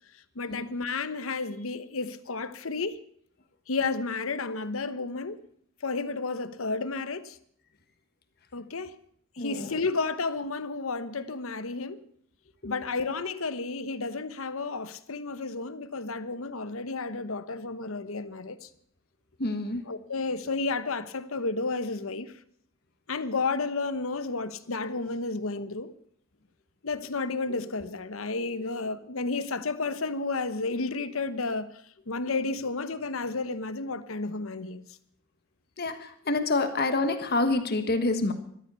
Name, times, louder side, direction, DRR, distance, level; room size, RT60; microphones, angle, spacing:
voice 1, 0.3-3.0 3.7-5.4 5.8-7.4 8.5-8.9 9.4-12.0 12.6-18.7 19.9-22.3 23.1-25.9 26.8-34.8, left 3 dB, 80° left, 1.0 m, -32 dB
voice 2, 9.4-9.8 12.6-12.7 19.4-19.8 35.8-38.3, left 2 dB, 50° left, 1.4 m, -27 dB
14.5 x 12.5 x 6.9 m
head